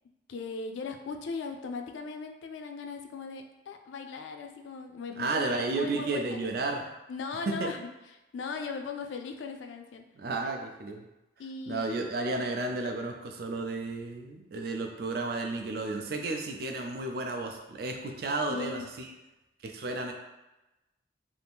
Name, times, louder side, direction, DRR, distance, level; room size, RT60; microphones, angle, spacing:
voice 1, 0.3-6.5 7.1-7.9 8.3-10.0 11.4-12.1 18.5-18.9, left 4 dB, 75° left, 5 dB, 0.3 m, -38 dB
voice 2, 5.2-6.8 7.5-7.7 10.2-11.1 11.7-19.1 19.6-20.1, right 3 dB, 55° right, 3 dB, 0.4 m, -32 dB
2.7 x 2.5 x 3.4 m, 1.0 s
head